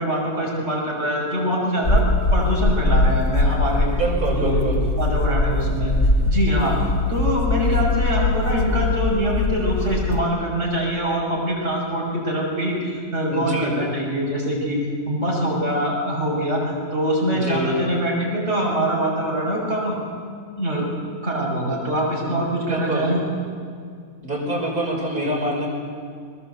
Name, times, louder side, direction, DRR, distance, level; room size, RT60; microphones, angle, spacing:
voice 1, 0.0-2.1 2.3-3.9 4.4-4.6 5.0-5.9 6.3-6.8 7.1-14.8 15.0-20.0 20.6-20.8 21.2-23.2 25.2-25.3, right 1 dB, 50° right, -3 dB, 6.7 m, -24 dB
sound 1, 1.8-10.2, left 2 dB, 50° left, 2.3 m, -21 dB
voice 2, 4.0-4.8 12.7-12.8 13.3-13.8 17.3-17.8 22.2-22.3 22.7-23.1 24.2-25.7, right 1 dB, 75° right, -2 dB, 6.0 m, -26 dB
21.5 x 21.0 x 8.3 m, 2.2 s
omnidirectional pair, 1.6 m